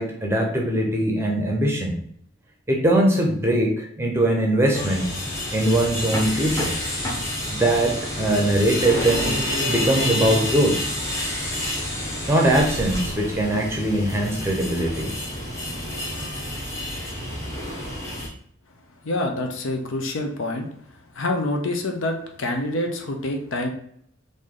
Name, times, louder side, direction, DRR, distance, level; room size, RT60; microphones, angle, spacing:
voice 1, 0.0-2.0 2.7-5.1 5.5-6.7 7.5-9.4 9.7-10.8 12.3-15.1, right 1 dB, 10° right, -1 dB, 0.7 m, -21 dB
sound 1, 4.7-18.3, left 1 dB, 15° left, 0.9 m, -28 dB
voice 2, 19.0-20.7 21.1-23.7, left 1 dB, 70° left, 3 dB, 0.6 m, -26 dB
3.2 x 2.7 x 3.7 m, 0.66 s
head